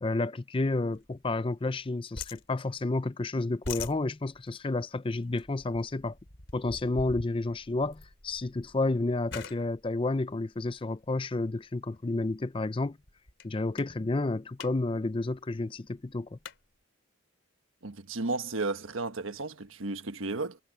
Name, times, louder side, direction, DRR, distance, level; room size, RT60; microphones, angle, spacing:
voice 1, 0.0-6.2 6.5-13.0 13.4-16.4, left 2 dB, 25° left, 0.5 m, -31 dB
sound 1, 0.9-1.9 2.1-3.1 3.4-11.2 11.9-12.1 12.5-12.6 12.9-13.5 13.8-14.0 14.3-14.7 15.0-15.1 15.3-16.6, left 4 dB, 60° left, 4.2 m, -44 dB
voice 2, 17.8-20.6, right 3 dB, 75° right, 1.3 m, -33 dB
head